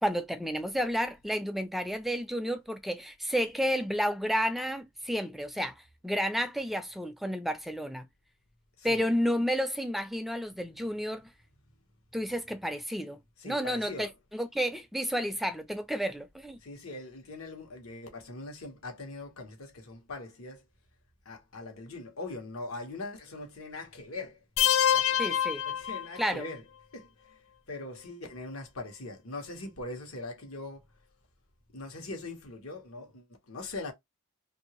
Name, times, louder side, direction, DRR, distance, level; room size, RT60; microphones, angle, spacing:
voice 1, 0.0-8.1 8.8-11.3 12.1-13.2 13.4-16.6 25.2-25.6 26.2-26.5, equal, ahead, 0.3 m, -31 dB
voice 2, 13.4-14.1 16.6-20.6 21.2-24.4 24.8-25.2 25.6-26.6 26.9-27.4 27.7-30.9 31.7-33.9, left 2 dB, 85° left, 1.3 m, -41 dB
sound 1, 24.6-26.5, left 10 dB, 70° left, 0.4 m, -26 dB
2.8 x 2.7 x 2.9 m
head